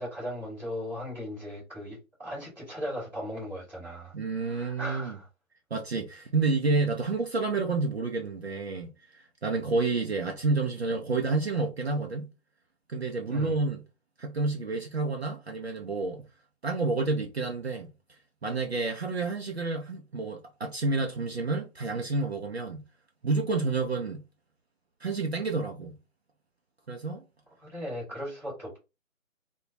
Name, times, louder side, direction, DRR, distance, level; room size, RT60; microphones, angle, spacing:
voice 1, 0.0-4.1 4.4-5.3 13.3-13.5 27.7-28.8, equal, 5° right, 0.7 m, -37 dB
voice 2, 4.1-5.2 5.7-12.3 12.9-13.9 14.2-16.3 16.6-17.9 18.4-22.8 23.2-24.2 25.0-26.0 26.9-27.2, right 3 dB, 50° right, 0.4 m, -29 dB
2.1 x 2.1 x 2.7 m
figure-of-eight pair, 150°, 41 cm